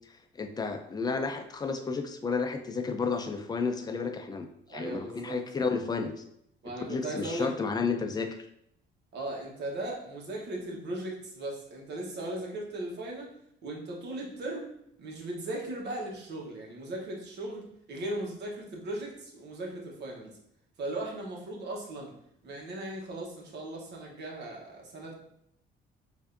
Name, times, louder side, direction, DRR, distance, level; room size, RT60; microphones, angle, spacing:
voice 1, 0.3-6.1 6.9-8.4, left 4 dB, 20° left, 6 dB, 0.4 m, -32 dB
voice 2, 4.7-5.4 6.6-7.5 9.1-13.3 13.6-14.7 15.0-20.4 20.8-22.1 22.4-25.1, right 1 dB, 65° right, -1 dB, 1.1 m, -37 dB
4.7 x 2.6 x 2.6 m, 0.74 s
cardioid pair, 100°, 19 cm